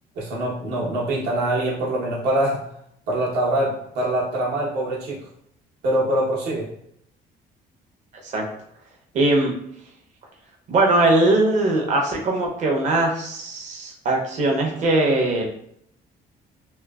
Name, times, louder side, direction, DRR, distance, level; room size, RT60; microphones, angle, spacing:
voice 1, 0.1-2.6 3.1-5.2 5.8-6.7, right 1 dB, 75° right, -3 dB, 0.9 m, -24 dB
voice 2, 9.1-9.5 10.7-15.5, right 2 dB, 45° right, 0 dB, 0.6 m, -20 dB
2.9 x 2.0 x 2.3 m, 0.71 s
cardioid pair, 110°, 17 cm